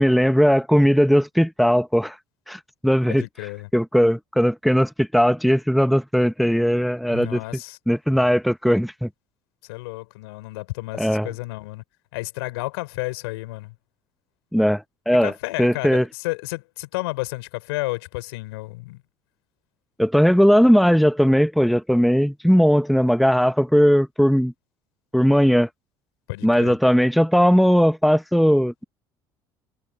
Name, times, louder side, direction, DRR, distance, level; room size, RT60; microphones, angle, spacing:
voice 1, 0.0-2.2 2.5-3.2 3.7-7.4 7.9-9.1 11.0-11.3 14.5-15.3 15.6-16.1 20.0-24.5 25.1-25.7 26.4-28.8, equal, ahead, 1.4 m, -18 dB
voice 2, 3.0-3.7 7.1-7.8 9.7-11.8 12.1-13.7 15.2-19.0 26.3-26.8, left 22 dB, 80° left, 3.9 m, -31 dB
hypercardioid pair, 70°, 13 cm